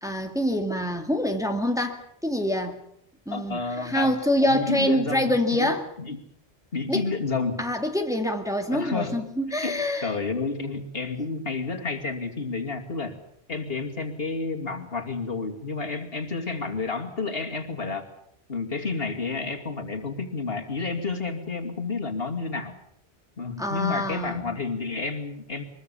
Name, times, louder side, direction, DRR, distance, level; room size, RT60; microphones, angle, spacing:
voice 1, 0.0-2.8 3.3-5.9 6.9-7.0 7.6-10.1 23.6-24.6, left 1 dB, 5° right, 4 dB, 2.0 m, -26 dB
voice 2, 3.3-4.1 4.4-5.7 6.0-6.2 6.7-7.6 8.7-9.2 9.6-13.2 13.5-18.1 18.5-22.7 23.4-25.6, left 4 dB, 65° left, 3 dB, 2.8 m, -30 dB
23.0 x 22.0 x 7.0 m, 0.74 s
omnidirectional pair, 1.1 m